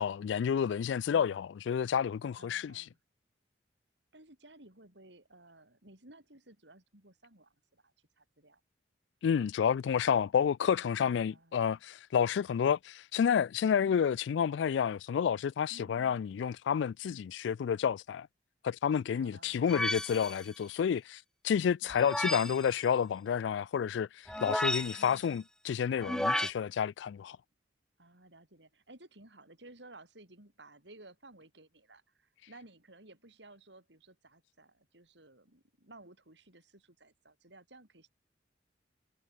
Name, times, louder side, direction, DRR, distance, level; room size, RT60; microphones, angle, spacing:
voice 1, 0.0-2.8 9.2-18.3 18.6-24.1 24.4-27.4, left 7 dB, 75° left, 0.3 m, -30 dB
voice 2, 1.1-1.4 2.4-3.0 4.1-8.6 11.3-11.8 13.8-14.0 15.7-16.2 19.1-19.7 21.8-22.5 24.9-25.4 28.0-38.1, right 2 dB, 70° right, 6.6 m, -57 dB
sound 1, 19.7-20.5 21.9-22.7 24.3-25.2 26.0-26.5, left 1 dB, 5° left, 0.6 m, -33 dB
head